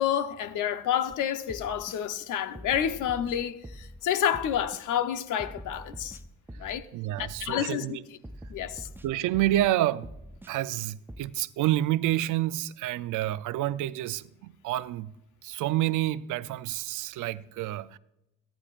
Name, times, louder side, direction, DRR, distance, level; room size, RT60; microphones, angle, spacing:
voice 1, 0.0-6.2 6.6-6.9 7.2-8.0 8.5-8.9, left 9 dB, 85° left, 1.0 m, -29 dB
sound 1, 1.1-1.2 1.5-2.0 2.5-4.0 4.3-4.8 5.4-6.9 7.2-7.7 8.2-9.7 10.0-10.5 11.1-11.2, right 1 dB, 5° right, 0.5 m, -44 dB
voice 2, 6.9-8.0 9.0-10.1 10.5-15.1 15.4-18.0, right 14 dB, 85° right, 0.6 m, -28 dB
23.0 x 10.0 x 2.5 m
cardioid pair, 90°, 30 cm